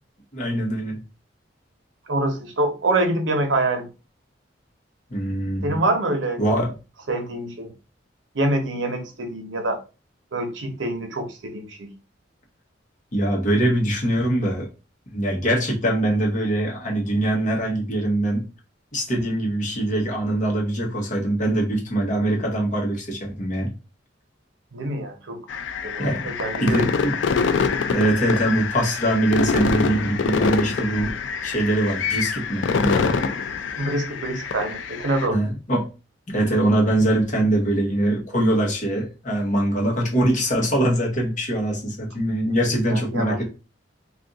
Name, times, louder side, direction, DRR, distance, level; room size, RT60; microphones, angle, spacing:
voice 1, 0.3-1.0 5.1-5.8 6.4-6.7 13.1-14.7 15.1-18.5 18.9-23.7 26.0-26.3 26.6-27.2 27.9-31.1 31.4-33.1 35.3-35.9 36.3-43.4, right 1 dB, 45° left, 1.1 m, -23 dB
voice 2, 2.1-3.9 5.6-6.6 7.1-7.7 8.3-9.8 10.3-11.9 24.7-26.8 33.8-35.4 42.9-43.4, right 2 dB, 90° right, 0.8 m, -25 dB
sound 1, 25.5-35.3, left 5 dB, 80° left, 0.4 m, -25 dB
2.6 x 2.5 x 3.8 m
head